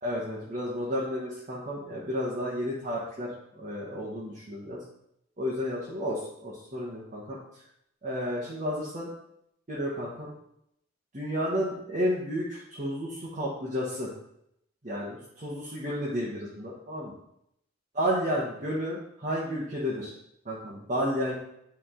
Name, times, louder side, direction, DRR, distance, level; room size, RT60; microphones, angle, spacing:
voice 1, 0.0-4.8 5.4-7.4 8.0-9.1 9.7-10.3 11.1-14.1 14.8-17.1 17.9-20.1 20.4-21.4, equal, 40° right, -6 dB, 1.4 m, -32 dB
9.8 x 3.7 x 3.8 m, 0.76 s
head